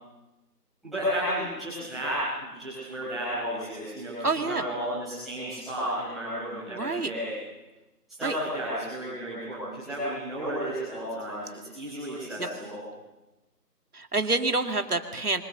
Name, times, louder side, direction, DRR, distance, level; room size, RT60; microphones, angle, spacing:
voice 1, 0.8-7.3 8.1-12.8, equal, ahead, -17 dB, 4.9 m, -32 dB
voice 2, 4.2-4.6 6.7-7.1 8.2-8.4 12.4-12.5 13.9-15.4, right 3 dB, 65° right, 6 dB, 2.3 m, -27 dB
28.0 x 24.5 x 6.9 m, 1.1 s
figure-of-eight pair, 180°, 49 cm